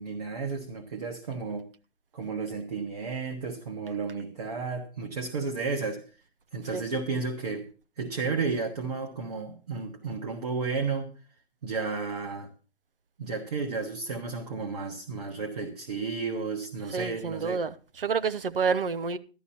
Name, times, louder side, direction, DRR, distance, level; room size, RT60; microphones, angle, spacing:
voice 1, 0.0-1.7 2.1-6.0 6.5-7.7 8.0-11.1 11.6-12.5 13.2-17.6, right 4 dB, 40° right, 1.3 m, -32 dB
voice 2, 16.9-19.2, right 5 dB, 60° right, 0.8 m, -29 dB
12.5 x 11.0 x 4.3 m
hypercardioid pair, 170°, 32 cm